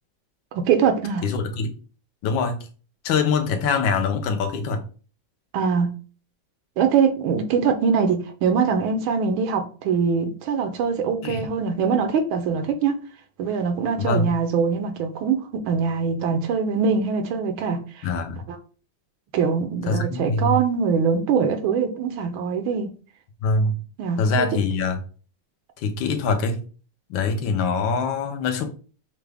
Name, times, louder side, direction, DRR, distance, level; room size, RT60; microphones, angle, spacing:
voice 1, 0.5-1.3 5.5-6.0 6.8-13.0 13.4-18.1 19.3-22.9 24.0-24.5, right 6 dB, 80° right, 1.5 m, -23 dB
voice 2, 1.2-1.7 2.2-2.7 3.0-4.8 11.2-11.5 14.0-14.3 18.0-18.4 19.9-20.6 23.4-23.8 24.2-25.0 25.8-26.6 27.1-28.7, left 4 dB, 75° left, 1.4 m, -23 dB
6.0 x 2.2 x 3.4 m
omnidirectional pair, 2.2 m